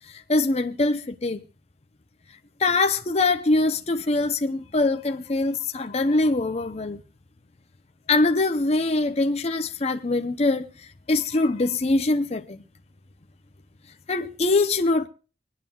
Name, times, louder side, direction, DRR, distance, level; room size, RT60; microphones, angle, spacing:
voice 1, 0.1-1.4 2.6-7.0 8.1-12.6 14.1-15.1, left 2 dB, 35° left, 0.7 m, -23 dB
25.5 x 9.2 x 2.3 m
head